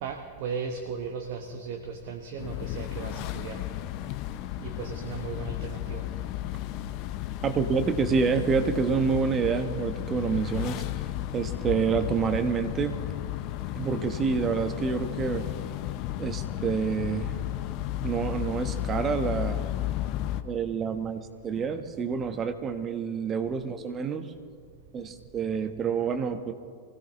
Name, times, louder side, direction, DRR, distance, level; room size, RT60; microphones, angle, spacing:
voice 1, 0.0-3.6 4.6-6.0, right 5 dB, 50° right, 5 dB, 1.1 m, -36 dB
sound 1, 2.4-20.4, left 13 dB, 40° left, 0.7 m, -33 dB
voice 2, 7.4-10.8 11.3-13.0 13.8-15.5 16.2-17.4 18.0-19.6 20.4-24.3 24.9-26.5, right 6 dB, 25° right, 8 dB, 1.2 m, -28 dB
24.0 x 16.5 x 3.1 m, 2.1 s
figure-of-eight pair, 90°, 0 cm